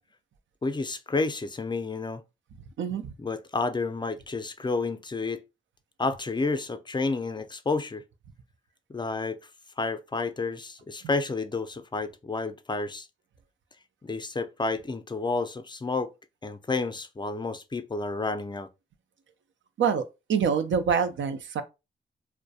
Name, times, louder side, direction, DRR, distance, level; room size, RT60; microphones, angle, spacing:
voice 1, 0.6-2.2 3.2-5.4 6.0-8.0 8.9-9.4 9.8-13.1 14.0-16.1 16.4-18.7, left 3 dB, 20° left, 0.4 m, -30 dB
voice 2, 2.8-3.1 19.8-20.0 20.3-21.6, right 6 dB, 65° right, 0.4 m, -25 dB
2.2 x 2.1 x 2.6 m
supercardioid pair, 40°, 21 cm